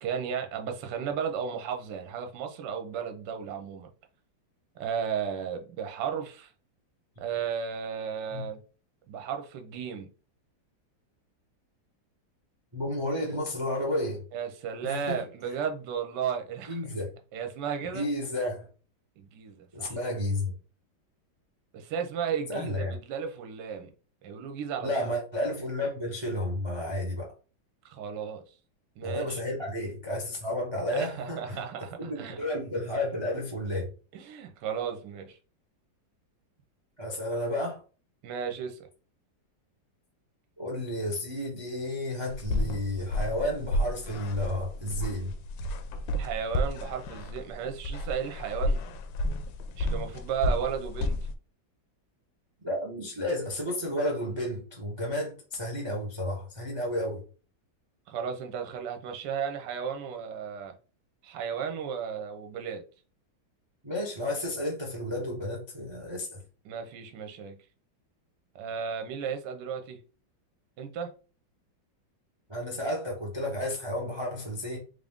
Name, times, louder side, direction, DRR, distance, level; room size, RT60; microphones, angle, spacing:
voice 1, 0.0-3.9 4.8-6.5 7.2-8.6 9.1-10.1 14.3-16.8 17.3-18.0 19.2-20.0 21.7-23.9 24.2-24.9 27.8-28.4 29.0-29.4 30.9-32.4 34.1-35.4 38.2-38.8 46.2-48.8 49.7-51.2 58.1-60.7 61.2-62.8 66.6-67.6 68.5-70.0 70.8-71.1, right 7 dB, 70° right, 1.2 m, -34 dB
voice 2, 12.7-14.2 14.8-15.2 16.7-17.1 17.8-18.7 19.7-20.5 22.5-23.0 24.8-27.3 29.0-31.6 32.0-33.9 37.0-37.8 40.6-45.3 52.6-57.2 63.8-66.4 72.5-74.8, left 1 dB, 35° right, 0.4 m, -32 dB
sound 1, 42.3-51.4, left 1 dB, 80° left, 1.3 m, -32 dB
3.6 x 2.6 x 3.5 m
omnidirectional pair, 2.1 m